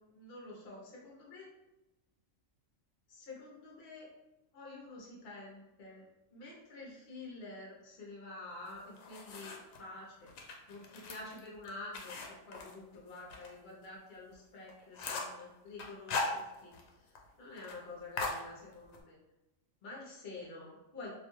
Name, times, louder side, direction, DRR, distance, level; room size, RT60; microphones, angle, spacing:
voice 1, 0.1-1.5 3.1-4.1 4.5-10.3 10.7-17.1 17.4-19.2 19.8-21.1, left 2 dB, 55° left, -4 dB, 0.8 m, -48 dB
sound 1, 8.7-9.8 10.3-13.5 13.8-13.9 14.3-14.4 14.7-15.4 15.8-16.9 17.2-17.3 17.6-17.8 18.2-19.0, left 4 dB, 80° left, 1.0 m, -40 dB
2.6 x 2.2 x 2.9 m, 1.0 s
omnidirectional pair, 1.4 m